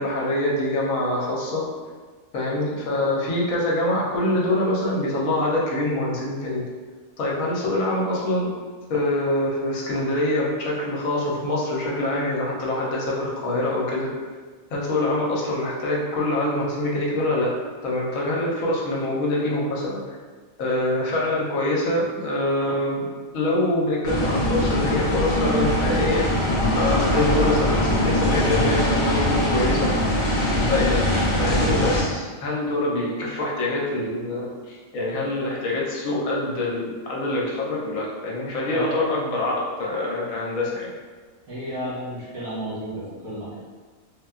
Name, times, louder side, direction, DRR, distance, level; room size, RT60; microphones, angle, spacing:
voice 1, 0.0-1.6 2.3-6.6 7.2-8.5 8.9-14.1 14.7-17.5 17.8-20.0 20.6-26.3 26.7-31.1 31.4-40.9, left 1 dB, 75° left, -4 dB, 1.1 m, -25 dB
sound 1, 24.0-32.0, left 1 dB, 55° left, 0.5 m, -22 dB
voice 2, 26.9-27.3 38.7-39.1 41.5-43.6, right 1 dB, 80° right, -9 dB, 1.6 m, -32 dB
3.6 x 2.2 x 2.3 m, 1.4 s
omnidirectional pair, 1.4 m